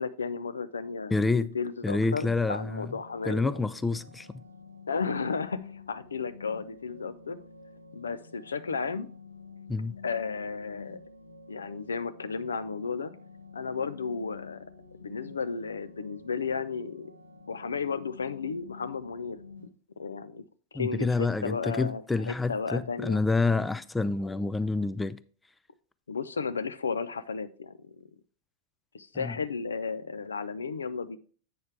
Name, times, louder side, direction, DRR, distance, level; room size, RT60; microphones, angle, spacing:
voice 1, 0.0-1.3 1.5-3.6 4.9-7.4 7.9-9.1 10.0-11.0 11.5-13.1 13.5-14.6 15.0-17.1 17.5-19.4 20.0-20.4 20.7-23.2 26.1-28.0 28.9-31.2, left 5 dB, 70° left, 0.5 m, -33 dB
voice 2, 1.1-1.5 1.8-2.9 3.3-4.4 9.7-10.0 20.7-25.2 29.1-29.4, left 3 dB, 10° left, 0.4 m, -28 dB
sound 1, 2.2-19.7, left 4 dB, 85° right, 1.1 m, -49 dB
8.4 x 6.4 x 3.5 m
figure-of-eight pair, 90°, 0 cm